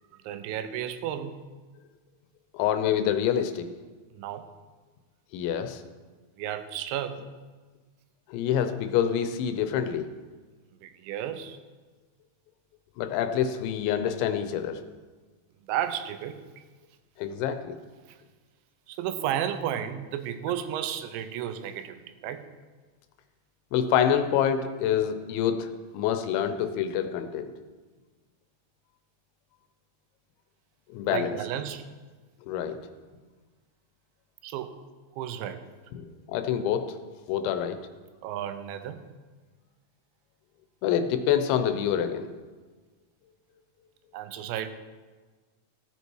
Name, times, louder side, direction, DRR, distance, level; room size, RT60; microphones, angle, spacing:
voice 1, 0.1-1.3 4.1-4.5 6.4-7.2 10.8-11.6 15.7-16.4 18.1-18.2 18.9-22.4 31.1-31.9 34.4-34.7 35.2-35.6 38.2-39.0 44.1-44.7, right 10 dB, 85° right, 10 dB, 3.1 m, -33 dB
voice 2, 2.5-3.7 5.3-5.8 8.3-10.1 13.0-14.8 17.2-17.8 23.7-27.5 30.9-31.4 32.5-32.8 35.9-37.0 37.3-37.8 40.8-42.3, left 9 dB, 85° left, 9 dB, 3.2 m, -26 dB
15.0 x 8.3 x 4.7 m, 1.4 s
omnidirectional pair, 5.2 m